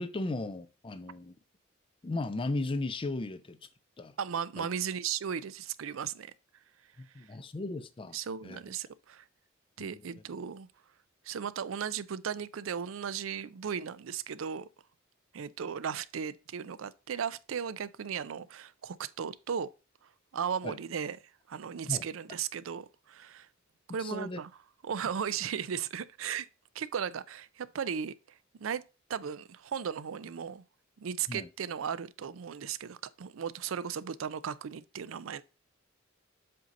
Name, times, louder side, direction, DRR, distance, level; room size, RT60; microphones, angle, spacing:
voice 1, 0.0-1.3 2.0-3.6 4.0-4.1 4.6-4.7 7.2-8.2 8.4-8.6 9.8-9.9 20.6-20.8 21.9-22.0 24.0-24.4 31.3-31.5, left 2 dB, 25° left, 0.5 m, -35 dB
voice 2, 4.2-6.3 8.1-9.2 9.8-10.7 11.2-14.7 15.3-19.7 20.3-21.2 21.5-23.5 23.9-24.5 24.8-26.5 26.7-28.8 29.1-30.6 31.0-35.4, right 7 dB, 80° right, 0.4 m, -36 dB
7.6 x 2.7 x 5.2 m
head